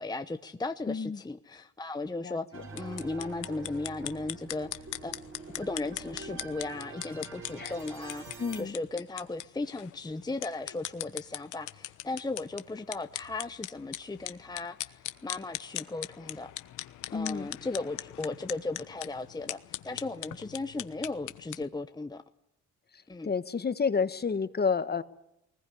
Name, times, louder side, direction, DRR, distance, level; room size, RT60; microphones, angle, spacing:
voice 1, 0.0-2.5 2.7-5.1 5.6-16.5 17.1-22.2 23.1-23.3, left 2 dB, 15° left, 8 dB, 0.9 m, -36 dB
voice 2, 0.9-1.2 2.2-2.6 7.6-7.7 8.4-8.8 17.1-17.5 23.2-25.0, left 5 dB, 35° left, 12 dB, 1.4 m, -30 dB
sound 1, 2.5-8.6, right 4 dB, 40° right, 7.2 m, -45 dB
sound 2, 2.7-21.6, left 15 dB, 85° left, 1.1 m, -41 dB
21.0 x 20.0 x 9.9 m, 0.83 s
cardioid pair, 90°, 30 cm